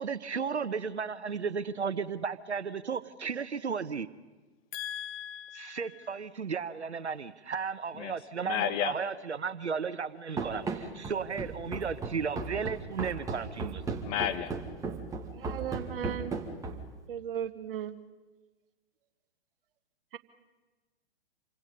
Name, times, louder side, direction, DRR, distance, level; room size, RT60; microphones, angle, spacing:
voice 1, 0.0-4.1 5.5-13.8, right 6 dB, 90° right, 13 dB, 1.1 m, -34 dB
voice 2, 4.7-6.0 8.0-8.1 8.4-8.9 14.0-14.5, left 11 dB, 30° left, 10 dB, 1.4 m, -33 dB
Run, 10.4-17.0, right 4 dB, 10° right, 2.1 m, -36 dB
voice 3, 15.3-16.3 17.1-18.0, right 9 dB, 55° right, 10 dB, 1.7 m, -36 dB
28.0 x 24.5 x 5.4 m, 1.2 s
hypercardioid pair, 130°, 33 cm